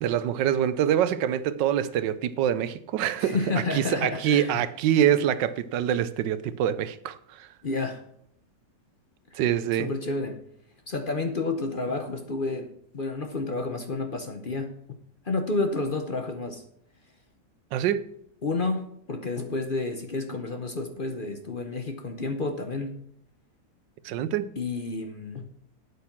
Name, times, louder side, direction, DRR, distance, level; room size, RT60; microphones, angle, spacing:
voice 1, 0.0-3.4 3.7-7.5 9.3-9.9 17.7-18.0 24.0-24.5, right 10 dB, 85° right, 1.4 m, -25 dB
voice 2, 3.2-4.7 7.6-8.0 9.3-9.4 9.8-10.4 10.9-14.8 15.2-16.6 18.4-23.0 24.6-25.5, left 3 dB, 40° left, 0.8 m, -30 dB
8.4 x 8.4 x 5.9 m
omnidirectional pair, 1.9 m